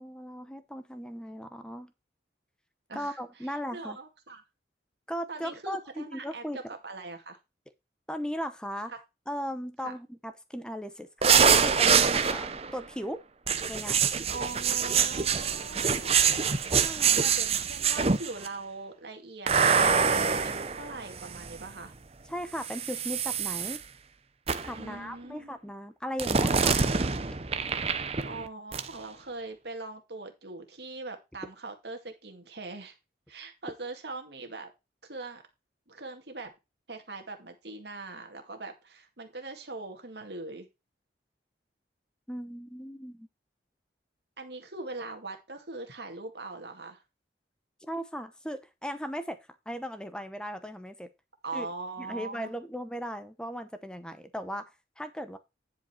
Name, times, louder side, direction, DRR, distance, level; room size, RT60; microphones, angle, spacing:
voice 1, 0.0-1.9 2.9-4.0 5.1-6.6 8.1-8.9 9.3-13.2 13.7-14.0 16.7-17.3 22.3-23.8 24.6-26.8 42.3-43.3 47.9-49.4 49.7-51.1 51.5-51.7 52.0-54.6 55.0-55.4, equal, 5° left, 0.8 m, -37 dB
voice 2, 2.9-4.4 5.3-7.4 8.9-9.0 9.8-9.9 14.3-16.2 17.2-19.5 19.9-21.9 24.7-25.6 28.3-33.0 33.3-34.7 35.0-35.4 35.9-36.5 36.9-40.7 44.4-47.0 51.4-52.5, right 3 dB, 65° right, 2.2 m, -41 dB
sound 1, 11.2-12.7 13.5-18.5 19.5-21.6 22.6-23.8 24.5-24.8 26.2-28.5 28.7-28.9, right 6 dB, 35° right, 0.7 m, -25 dB
10.0 x 5.2 x 4.4 m
head